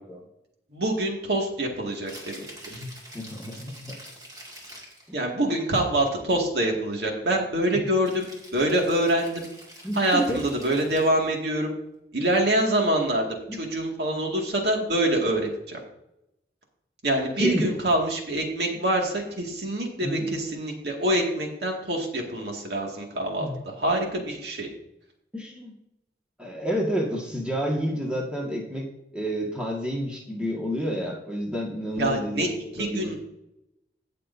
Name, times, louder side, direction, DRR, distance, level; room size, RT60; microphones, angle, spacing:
voice 1, 0.7-2.8 5.1-9.5 10.0-11.7 12.1-15.8 17.0-24.7 32.0-32.5 32.7-33.2, right 1 dB, 70° right, 1 dB, 2.1 m, -25 dB
Rattle (instrument), 1.9-5.1 8.0-11.3, right 1 dB, 20° right, 2.2 m, -46 dB
voice 2, 2.7-3.9 7.7-7.8 9.8-10.4 13.5-13.7 17.4-17.7 20.0-20.3 23.4-23.6 25.3-25.7 26.4-28.9 29.1-32.5 32.8-33.1, equal, 5° right, -2 dB, 1.7 m, -29 dB
17.5 x 6.7 x 2.7 m, 0.85 s
head